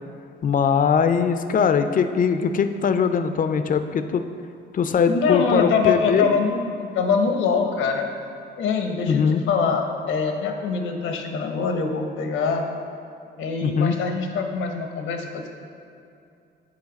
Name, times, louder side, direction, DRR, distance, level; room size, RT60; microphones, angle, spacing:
voice 1, 0.4-4.2 4.7-6.3 9.1-9.4 13.6-14.0, left 6 dB, 45° left, 9 dB, 0.5 m, -21 dB
voice 2, 4.8-8.1 8.6-12.7 13.4-15.5, left 5 dB, 85° left, 4 dB, 0.9 m, -24 dB
7.3 x 4.5 x 5.2 m, 2.6 s
cardioid pair, 90°, 20 cm